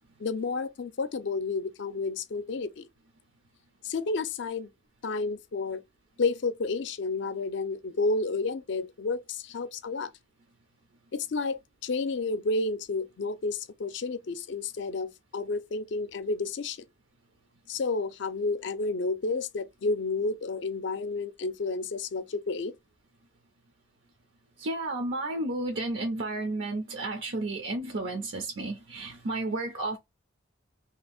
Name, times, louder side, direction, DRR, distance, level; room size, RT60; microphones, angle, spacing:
voice 1, 0.2-2.9 3.8-4.7 5.0-5.8 6.2-10.1 11.1-16.8 17.7-22.7, left 3 dB, 60° left, 0.4 m, -31 dB
voice 2, 24.6-30.0, right 2 dB, 70° right, 0.6 m, -32 dB
2.8 x 2.5 x 3.4 m
head